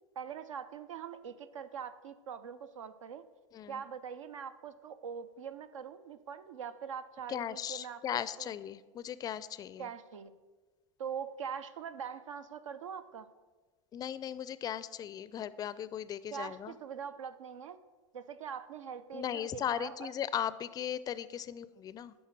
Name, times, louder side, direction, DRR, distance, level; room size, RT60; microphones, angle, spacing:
voice 1, 0.2-3.3 3.7-8.0 8.4-8.5 9.8-10.4 11.0-13.3 16.3-17.8 18.1-20.1, right 7 dB, 80° right, 12 dB, 0.5 m, -43 dB
voice 2, 7.3-9.9 13.9-16.7 19.1-22.1, left 10 dB, 25° left, 16 dB, 0.4 m, -37 dB
10.5 x 4.0 x 6.0 m, 1.3 s
hypercardioid pair, 105°, 16 cm